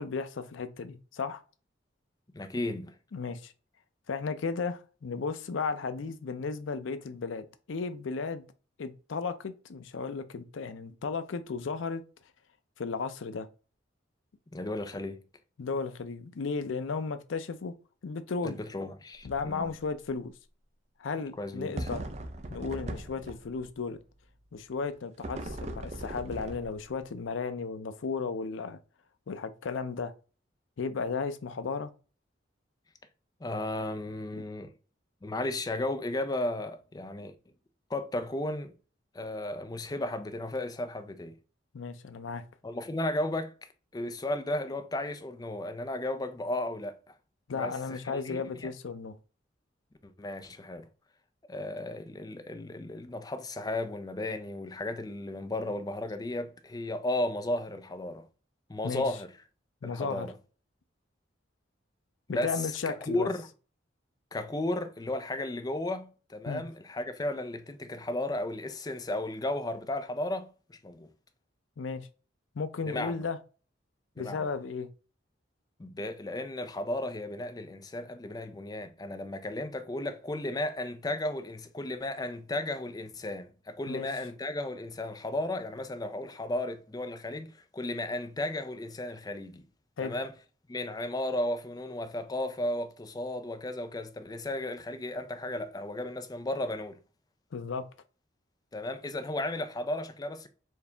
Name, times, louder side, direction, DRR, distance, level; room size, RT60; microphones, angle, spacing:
voice 1, 0.0-1.4 3.1-3.5 4.1-8.4 8.8-12.0 12.8-13.5 15.6-17.7 18.0-18.6 19.2-20.3 21.0-22.0 22.5-24.0 24.5-28.8 29.3-30.1 30.8-31.9 41.7-42.4 47.5-49.1 58.8-59.1 59.8-60.3 62.3-63.3 66.5-66.6 71.8-72.1 72.6-73.4 74.2-74.9 83.9-84.1 90.0-90.1 97.5-97.8, left 4 dB, 90° left, 0.5 m, -34 dB
voice 2, 2.3-2.9 14.5-15.2 18.4-19.7 21.4-21.9 33.4-34.7 35.2-37.3 37.9-38.7 39.1-41.4 42.6-43.5 43.9-47.1 47.5-48.7 50.0-50.9 51.5-58.3 58.7-59.3 59.8-60.3 62.3-63.5 64.3-71.1 72.9-73.2 74.2-74.5 75.8-89.6 90.0-90.3 90.7-97.0 98.7-100.5, left 1 dB, 20° left, 0.4 m, -34 dB
sound 1, 19.1-19.5 19.8-19.9 21.8-23.7 25.2-27.0, right 1 dB, 35° right, 0.5 m, -39 dB
4.6 x 2.8 x 3.3 m
head